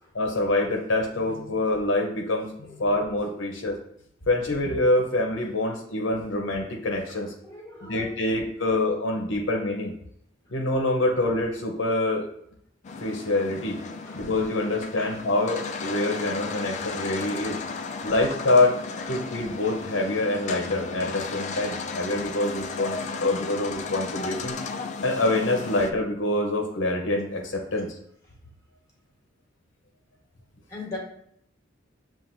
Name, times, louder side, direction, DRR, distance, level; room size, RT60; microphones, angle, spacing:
voice 1, 0.1-3.8 4.3-7.3 7.8-9.9 10.5-12.3 13.0-13.8 14.1-17.6 18.0-18.8 19.1-24.5 25.0-27.9, left 2 dB, 70° left, 1 dB, 0.7 m, -25 dB
voice 2, 7.1-8.8 14.0-14.2 15.0-15.1 17.2-17.3 19.1-19.3 30.7-31.0, left 2 dB, 15° left, -2 dB, 1.3 m, -42 dB
sound 1, 12.8-25.9, left 4 dB, 35° left, 0.3 m, -34 dB
7.3 x 2.5 x 2.6 m, 0.70 s
head